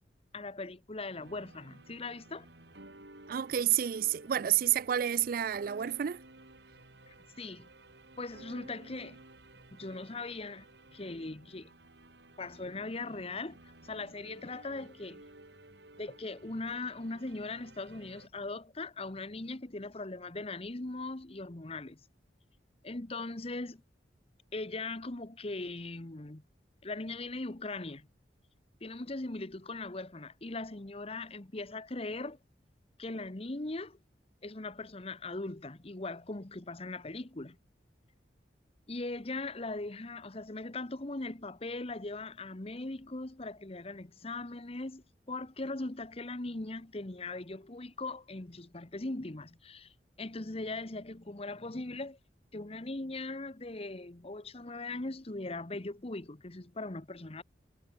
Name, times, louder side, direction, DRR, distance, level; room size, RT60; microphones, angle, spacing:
voice 1, 0.3-2.5 7.1-7.7 8.2-9.2 9.7-10.7 10.9-11.7 12.4-15.2 16.0-22.0 22.8-23.8 24.5-26.4 26.8-28.1 28.8-32.4 33.0-34.0 34.4-37.6 38.9-49.9 50.2-52.2 52.5-57.4, left 2 dB, 35° left, 1.1 m, -40 dB
sound 1, 1.2-18.3, right 2 dB, 75° right, 6.6 m, -55 dB
voice 2, 3.3-6.2, right 10 dB, 50° right, 0.4 m, -29 dB
head